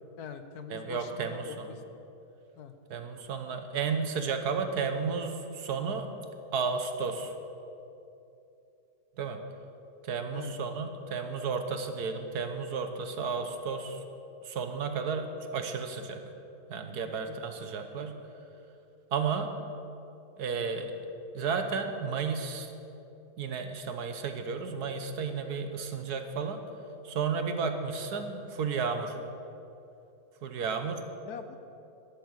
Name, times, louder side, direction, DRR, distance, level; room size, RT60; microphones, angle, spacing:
voice 1, 0.2-2.0 2.6-2.7 10.3-10.5 17.3-17.4 31.2-31.6, left 6 dB, 70° left, 9 dB, 1.3 m, -43 dB
voice 2, 0.7-1.7 2.9-6.1 6.5-7.3 9.2-9.4 10.0-14.0 14.4-16.2 16.7-18.1 19.1-19.5 20.4-20.9 21.3-22.7 23.4-26.6 27.0-29.2 30.4-31.1, right 5 dB, 70° right, 6 dB, 1.5 m, -33 dB
13.0 x 11.5 x 6.4 m, 2.8 s
omnidirectional pair, 1.8 m